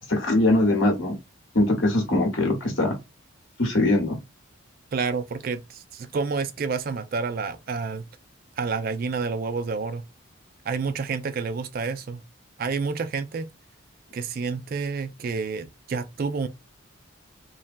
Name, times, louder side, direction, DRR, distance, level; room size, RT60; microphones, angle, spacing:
voice 1, 0.1-1.2 1.5-3.0 3.6-4.2, left 2 dB, 60° left, 1.1 m, -22 dB
voice 2, 4.9-8.1 8.6-10.0 10.7-12.2 12.6-13.5 14.1-16.5, right 4 dB, 45° right, 0.3 m, -29 dB
3.2 x 2.2 x 2.6 m
head